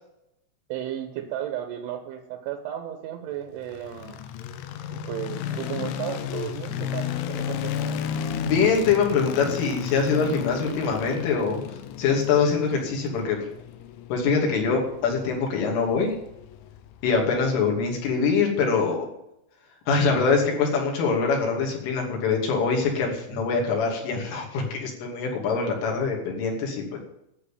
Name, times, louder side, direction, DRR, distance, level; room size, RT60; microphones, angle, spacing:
voice 1, 0.7-4.2 4.9-7.7, right 11 dB, 75° right, 7 dB, 3.2 m, -34 dB
sound 1, 3.6-17.8, left 9 dB, 90° left, 3.7 m, -33 dB
voice 2, 8.4-11.6 12.0-13.4 14.1-16.1 17.0-19.1 19.9-27.0, left 5 dB, 70° left, -1 dB, 5.1 m, -24 dB
11.5 x 8.0 x 8.5 m, 0.82 s
omnidirectional pair, 6.0 m